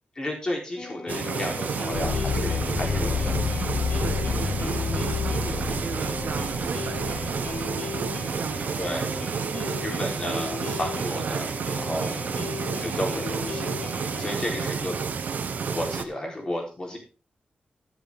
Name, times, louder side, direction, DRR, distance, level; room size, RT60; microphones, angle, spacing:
voice 1, 0.2-3.4 4.6-4.7 8.8-9.2 9.8-11.5 11.8-12.4 12.8-13.8 14.2-15.0 15.6-17.0, left 1 dB, 25° left, 0 dB, 4.0 m, -32 dB
sound 1, 0.8-14.7, left 5 dB, 45° left, 1.1 m, -38 dB
sound 2, 1.1-16.0, right 6 dB, 70° right, 1.1 m, -30 dB
voice 2, 1.8-2.3 4.0-10.1 11.1-11.6 12.3-12.8 14.3-14.7, right 6 dB, 85° right, 9 dB, 1.4 m, -39 dB
sound 3, 1.9-9.3, left 6 dB, 75° left, 0.8 m, -30 dB
12.0 x 11.0 x 3.7 m, 0.35 s
wide cardioid pair, 150°, 3 cm